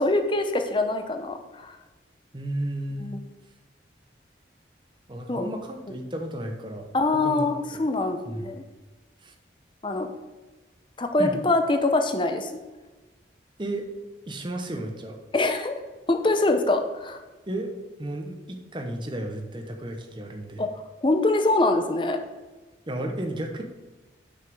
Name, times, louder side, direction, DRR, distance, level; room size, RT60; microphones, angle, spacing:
voice 1, 0.0-1.8 3.0-3.2 5.3-5.5 6.9-8.6 9.8-10.1 11.0-12.5 15.3-15.7 16.1-17.2 20.6-20.7 21.0-22.2, left 2 dB, 25° left, 6 dB, 0.7 m, -24 dB
voice 2, 2.3-3.2 5.1-6.9 7.2-7.9 8.2-8.5 9.2-9.3 11.2-11.4 13.6-13.9 14.3-15.2 17.5-17.7 18.0-20.7 22.9-23.6, right 1 dB, 25° right, 3 dB, 0.9 m, -33 dB
6.0 x 5.7 x 6.2 m, 1.2 s
head